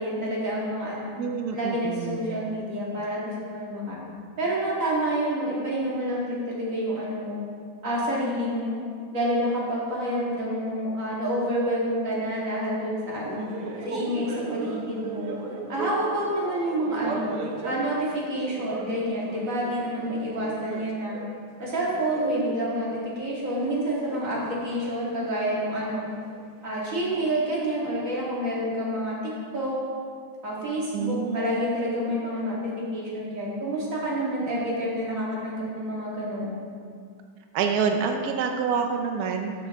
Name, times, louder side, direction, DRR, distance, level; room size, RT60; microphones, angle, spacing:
voice 1, 0.0-1.1 1.5-3.2 3.5-4.0 4.4-7.4 7.8-8.7 9.1-13.4 13.8-15.4 15.7-17.3 17.6-21.2 21.6-22.9 23.2-26.0 26.6-29.2 29.5-29.8 30.4-32.6 32.9-36.6, right 1 dB, 40° right, -6 dB, 2.2 m, -28 dB
voice 2, 1.2-2.3 30.9-31.5 37.5-39.5, right 6 dB, 85° right, 4 dB, 0.8 m, -27 dB
sound 1, 13.2-21.3 21.6-26.5 27.0-27.3, right 4 dB, 60° right, 1.2 m, -37 dB
13.0 x 5.5 x 3.7 m, 2.1 s
omnidirectional pair, 2.4 m